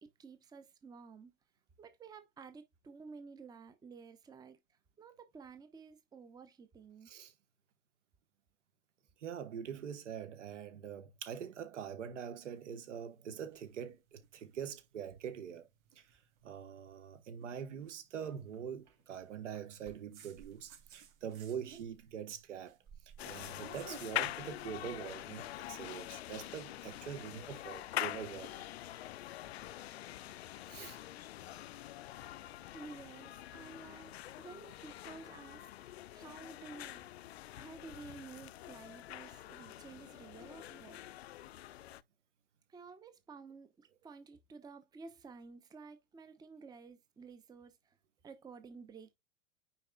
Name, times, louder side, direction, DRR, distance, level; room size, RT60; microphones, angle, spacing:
voice 1, 0.0-1.3 1.8-4.6 5.0-7.1 32.7-37.0 37.6-41.0 42.7-48.0 48.2-49.1, right 4 dB, 10° right, 0.8 m, -52 dB
voice 2, 9.2-15.7 15.9-22.8 23.2-28.7 30.7-31.0, right 8 dB, 60° right, 1.3 m, -44 dB
sound 1, 12.4-25.6, right 6 dB, 40° right, 3.1 m, -59 dB
sound 2, 23.2-42.0, left 14 dB, 50° left, 0.5 m, -45 dB
9.1 x 4.4 x 2.3 m
figure-of-eight pair, 95°, 40 cm